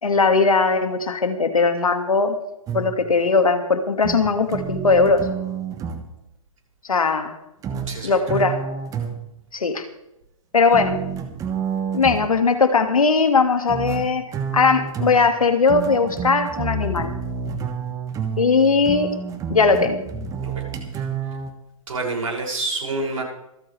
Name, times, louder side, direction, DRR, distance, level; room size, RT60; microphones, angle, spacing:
voice 1, 0.0-2.4 2.7-5.3 6.9-7.3 8.0-8.6 9.5-9.8 10.5-11.0 11.9-14.2 14.5-17.1 18.4-19.1 19.5-20.0, left 4 dB, 80° left, 7 dB, 2.2 m, -19 dB
sound 1, 2.7-3.1 4.0-6.1 7.6-9.4 10.7-12.4 13.7-21.5, right 6 dB, 20° right, 1.5 m, -29 dB
voice 2, 7.9-8.4 20.4-20.6 21.0-21.1 21.9-23.2, right 2 dB, 70° right, -1 dB, 6.7 m, -28 dB
26.5 x 8.9 x 3.4 m, 0.87 s
hypercardioid pair, 130°, 18 cm